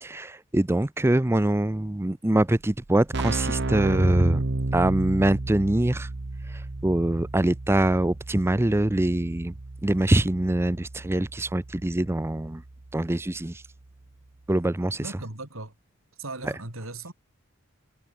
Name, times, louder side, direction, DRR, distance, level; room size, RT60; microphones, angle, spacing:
voice 1, 0.0-4.4 4.7-6.1 6.5-9.5 9.8-12.6 12.9-13.6 14.5-15.0 16.4-16.5, right 1 dB, 10° right, 0.5 m, -24 dB
Keyboard (musical), 2.5-2.6 2.8-13.5, right 2 dB, 55° right, 1.0 m, -33 dB
voice 2, 15.0-15.7 16.2-17.1, right 2 dB, 75° right, 4.5 m, -37 dB
head